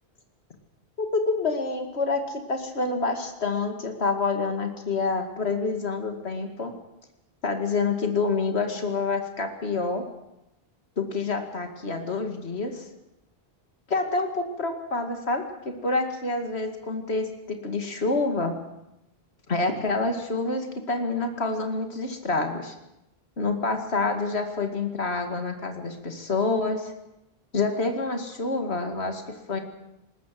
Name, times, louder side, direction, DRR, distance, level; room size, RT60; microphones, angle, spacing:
voice 1, 1.0-6.7 7.4-10.0 11.0-12.8 13.9-18.5 19.5-22.7 23.4-26.9 27.5-29.2 29.5-29.6, left 3 dB, 85° left, 5 dB, 2.5 m, -27 dB
20.0 x 20.0 x 7.7 m, 0.89 s
omnidirectional pair, 1.1 m